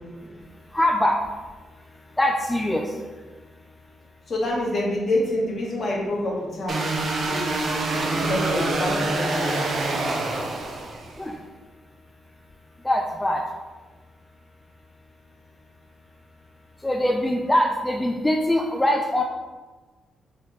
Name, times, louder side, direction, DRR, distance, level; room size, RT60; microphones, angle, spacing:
voice 1, 0.7-1.2 2.2-2.9 11.2-11.4 12.8-13.4 16.8-19.2, left 1 dB, 10° left, 2 dB, 0.3 m, -22 dB
voice 2, 4.3-6.8 7.2-7.6 8.3-9.7, left 1 dB, 50° left, -3 dB, 1.2 m, -26 dB
sound 1, 6.7-11.2, right 2 dB, 50° right, 0.6 m, -26 dB
4.5 x 3.2 x 3.0 m, 1.3 s
cardioid pair, 100°, 0 cm